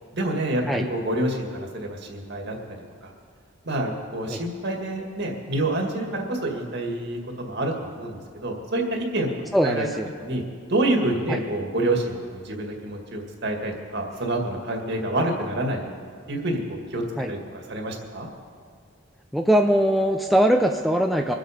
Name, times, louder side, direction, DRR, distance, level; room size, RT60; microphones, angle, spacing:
voice 1, 0.1-2.6 3.0-3.1 3.6-9.3 9.6-9.9 10.2-18.3, right 1 dB, 55° right, 1 dB, 2.0 m, -28 dB
voice 2, 9.5-10.1 11.3-11.4 17.2-17.3 19.3-21.3, equal, ahead, 3 dB, 0.5 m, -21 dB
23.5 x 8.0 x 5.1 m, 2.1 s
head